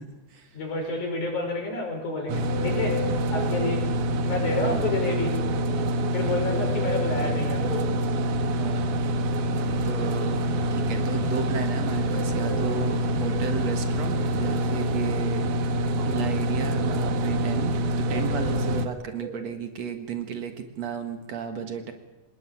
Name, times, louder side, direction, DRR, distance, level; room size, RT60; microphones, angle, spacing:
voice 1, 0.0-0.6 4.6-4.8 6.2-6.6 8.5-9.0 9.8-10.4 10.7-15.7 16.0-21.9, right 6 dB, 60° right, 6 dB, 2.8 m, -34 dB
voice 2, 0.5-3.0 3.3-3.8 4.2-5.4 6.1-7.9, left 2 dB, 70° left, 3 dB, 7.1 m, -29 dB
sound 1, 2.3-18.9, right 1 dB, 80° right, 3.0 m, -26 dB
sound 2, 2.4-3.8 6.5-7.9 12.1-13.5 18.0-19.4, equal, 15° left, 2.5 m, -36 dB
sound 3, 9.5-14.8, equal, 30° right, 4.8 m, -42 dB
26.0 x 19.5 x 8.7 m, 1.1 s
omnidirectional pair, 3.6 m